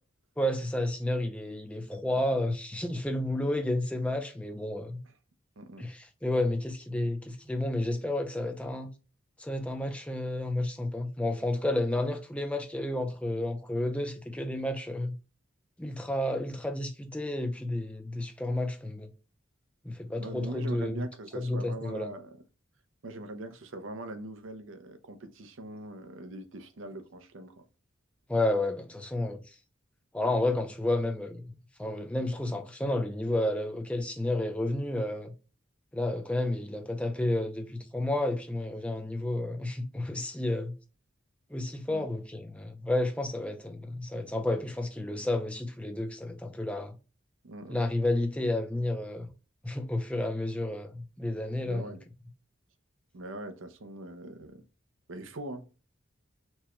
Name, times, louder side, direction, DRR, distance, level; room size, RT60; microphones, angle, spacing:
voice 1, 0.4-5.0 5.8-8.9 9.4-15.1 15.8-19.1 19.8-21.1 21.4-22.1 28.3-29.4 30.1-31.5 31.8-35.3 35.9-40.7 41.5-47.0 47.7-49.3 49.6-51.9, left 1 dB, 5° left, 0.4 m, -31 dB
voice 2, 5.6-5.9 20.2-22.4 23.0-27.6 41.9-42.1 47.4-47.8 51.6-52.0 53.1-54.6 55.1-55.7, right 2 dB, 75° right, 0.6 m, -42 dB
4.4 x 2.2 x 3.0 m
head